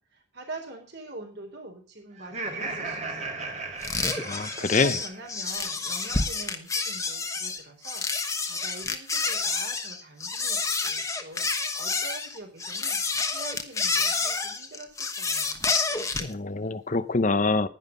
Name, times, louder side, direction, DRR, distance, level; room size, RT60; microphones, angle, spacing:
voice 1, 0.1-3.5 4.6-8.0 8.5-13.0 13.3-15.8, right 2 dB, 55° right, 3 dB, 4.1 m, -44 dB
Laughter, 2.2-5.4, right 3 dB, 35° right, 2.1 m, -36 dB
sound 1, 3.8-16.3, left 4 dB, 15° left, 1.2 m, -29 dB
voice 2, 4.2-4.9 16.2-17.7, left 3 dB, 40° left, 14 dB, 0.7 m, -25 dB
11.0 x 10.5 x 5.4 m, 0.38 s
head